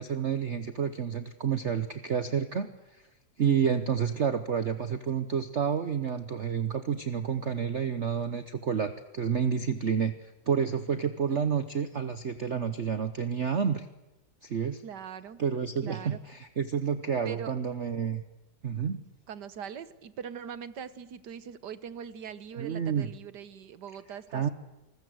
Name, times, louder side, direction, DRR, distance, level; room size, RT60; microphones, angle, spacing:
voice 1, 0.0-3.0 3.4-13.9 14.4-14.8 15.4-18.2 18.6-19.1 22.6-23.1 24.3-24.5, right 7 dB, 45° right, 11 dB, 1.0 m, -29 dB
voice 2, 14.8-15.4 15.8-16.2 17.2-17.5 19.3-24.5, right 8 dB, 60° right, 14 dB, 1.6 m, -41 dB
28.0 x 20.0 x 7.9 m, 1.0 s
omnidirectional pair, 2.1 m